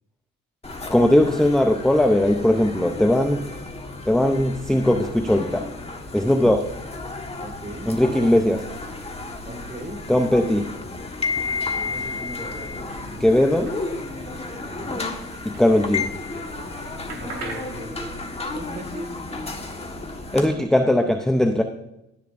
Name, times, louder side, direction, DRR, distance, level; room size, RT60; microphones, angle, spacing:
sound 1, 0.6-20.5, left 3 dB, 20° left, 1.4 m, -33 dB
voice 1, 0.9-3.5 4.1-5.7 6.1-6.6 7.9-8.7 10.1-10.7 13.2-13.8 15.5-16.1 20.3-21.6, left 1 dB, ahead, 5 dB, 0.6 m, -19 dB
sound 2, 4.6-16.3 16.6-20.7, right 3 dB, 60° right, 3.6 m, -47 dB
voice 2, 6.2-6.5 7.4-7.9 9.5-10.0 11.7-12.6 13.0-13.3 14.6-15.0 17.2-18.1 18.5-19.6, right 1 dB, 25° right, 6 dB, 1.9 m, -38 dB
18.0 x 6.8 x 2.6 m, 0.90 s
cardioid pair, 90°, 30 cm